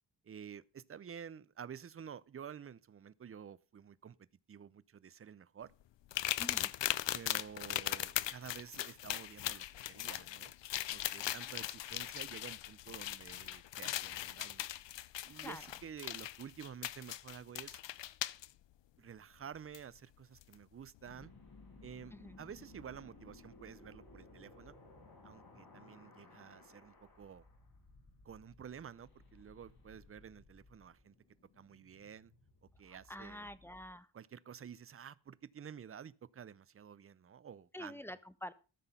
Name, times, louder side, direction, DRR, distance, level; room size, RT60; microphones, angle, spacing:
voice 1, 0.2-5.7 7.1-10.5 10.9-14.6 15.2-17.8 19.0-21.3 21.8-24.7 25.2-27.5 28.2-31.1 31.6-32.3 32.6-33.5 34.1-38.0, right 8 dB, 35° right, 0.5 m, -51 dB
sound 1, 6.1-18.5 19.7-19.8 20.4-20.5, left 14 dB, 85° left, 0.6 m, -39 dB
voice 2, 6.4-6.7 15.4-15.6 22.1-22.4 32.9-34.1 37.7-38.5, left 1 dB, 5° left, 0.6 m, -47 dB
sound 2, 21.0-33.9, left 3 dB, 60° left, 4.6 m, -59 dB
14.0 x 6.1 x 5.3 m
wide cardioid pair, 120°, 43 cm